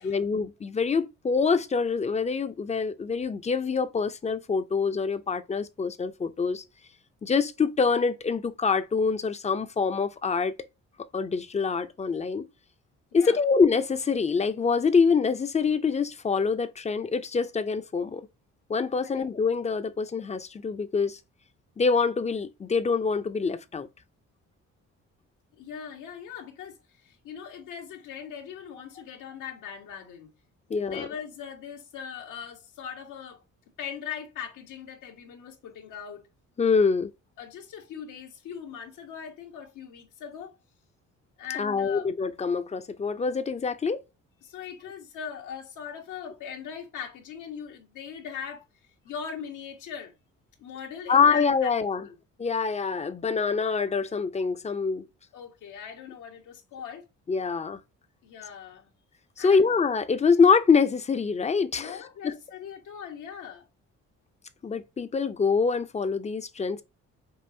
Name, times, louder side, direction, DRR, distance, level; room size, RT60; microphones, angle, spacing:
voice 1, 0.0-6.6 7.2-10.5 11.1-12.4 13.1-18.2 18.7-21.2 21.8-23.9 30.7-31.1 36.6-37.1 41.6-44.0 51.1-52.1 52.4-55.1 57.3-57.8 59.4-62.3 64.6-66.8, left 5 dB, 25° left, 0.5 m, -25 dB
voice 2, 13.1-13.4 19.0-19.2 25.6-30.3 30.7-33.4 33.8-36.2 37.4-40.5 41.4-42.1 44.4-48.6 49.0-50.1 50.6-51.7 52.0-52.2 55.3-57.1 58.2-58.9 59.4-59.7 61.8-63.7, left 8 dB, 85° left, 1.2 m, -40 dB
5.5 x 2.4 x 2.7 m
cardioid pair, 90°, 30 cm